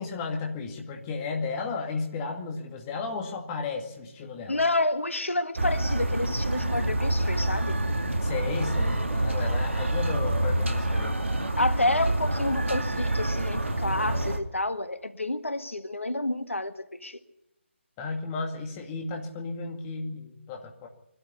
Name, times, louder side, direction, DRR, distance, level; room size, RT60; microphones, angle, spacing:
voice 1, 0.0-4.6 8.2-11.2 18.0-20.9, left 4 dB, 20° left, 2 dB, 2.2 m, -34 dB
voice 2, 4.5-7.8 11.6-17.2, left 2 dB, 80° left, 10 dB, 1.7 m, -29 dB
sound 1, 5.6-14.4, right 1 dB, 70° right, 2.4 m, -27 dB
22.5 x 12.5 x 9.7 m, 0.89 s
figure-of-eight pair, 150°, 7 cm